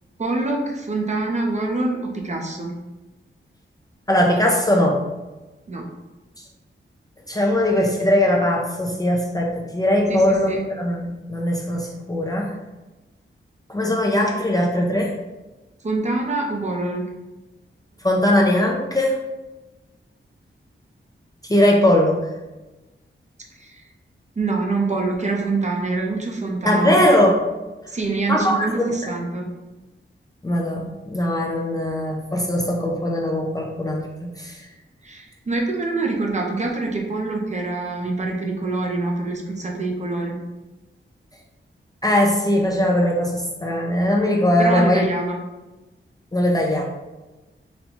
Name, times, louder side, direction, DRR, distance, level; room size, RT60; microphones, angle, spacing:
voice 1, 0.2-2.7 5.7-5.9 10.1-10.6 15.8-17.1 23.6-23.8 24.4-27.0 27.9-29.5 35.0-40.4 44.6-45.4, right 3 dB, 35° right, 0 dB, 0.5 m, -25 dB
voice 2, 4.1-5.0 7.3-12.5 13.7-15.1 18.0-19.2 21.5-22.2 26.6-27.4 28.3-28.9 30.4-34.6 42.0-45.1 46.3-46.8, left 1 dB, 20° left, -1 dB, 0.4 m, -20 dB
4.0 x 2.2 x 2.9 m, 1.1 s
wide cardioid pair, 115°, 21 cm